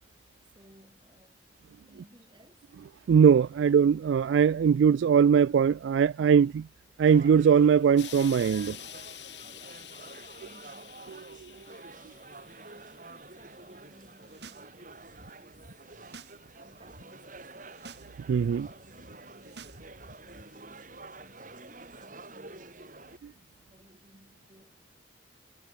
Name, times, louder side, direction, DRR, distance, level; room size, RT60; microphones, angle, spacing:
voice 1, 0.4-1.5 1.9-2.8 9.4-11.1 11.5-15.8 16.6-17.9 18.5-18.9 19.3-24.9, right 1 dB, 25° right, 7.1 m, -60 dB
voice 2, 3.1-6.7 7.0-8.8 18.3-18.7, right 7 dB, 80° right, 0.3 m, -21 dB
sound 1, 7.1-23.2, right 3 dB, 45° right, 7.5 m, -49 dB
Explosion, 8.0-13.3 14.1-14.2, left 12 dB, 70° left, 6.7 m, -47 dB
sound 2, 14.1-14.7 14.9-16.4 16.6-17.0 17.5-18.1 18.4-20.4, right 3 dB, 65° right, 4.0 m, -51 dB
head